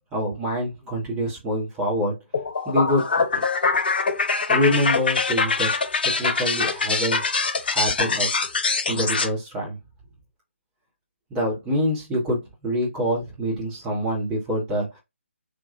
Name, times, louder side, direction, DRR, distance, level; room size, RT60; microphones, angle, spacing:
voice 1, 0.1-2.2 2.7-3.1 3.3-3.4 4.5-5.7 6.0-7.2 7.6-8.3 8.9-9.8 11.3-15.0, equal, 10° right, -6 dB, 1.8 m, -25 dB
sound 1, 2.3-9.3, left 4 dB, 45° left, 0.6 m, -23 dB
3.6 x 3.1 x 2.5 m, 0.22 s
figure-of-eight pair, 145°, 7 cm